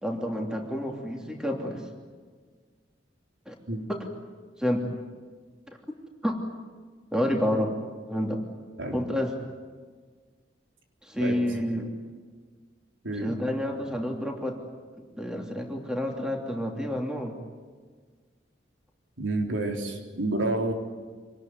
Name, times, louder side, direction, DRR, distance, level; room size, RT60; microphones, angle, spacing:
voice 1, 0.0-1.9 3.5-3.6 3.9-4.0 4.6-4.9 6.2-6.4 7.1-7.7 8.1-8.4 8.9-9.3 11.0-11.9 13.1-14.6 15.2-17.4, equal, 5° right, 2 dB, 3.0 m, -29 dB
voice 2, 19.2-20.7, right 2 dB, 90° right, 3 dB, 3.9 m, -29 dB
26.0 x 19.5 x 9.5 m, 1.5 s
head